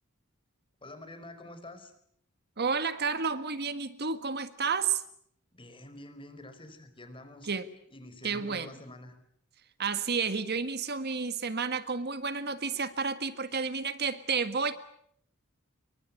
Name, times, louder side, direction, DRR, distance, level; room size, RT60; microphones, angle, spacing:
voice 1, 0.8-1.9 5.5-7.5 7.9-9.2, left 1 dB, 25° left, 9 dB, 4.7 m, -47 dB
voice 2, 2.6-5.0 7.4-7.7 8.2-8.7 9.8-14.7, right 5 dB, 50° right, 11 dB, 1.7 m, -31 dB
28.0 x 24.0 x 8.4 m, 0.70 s
head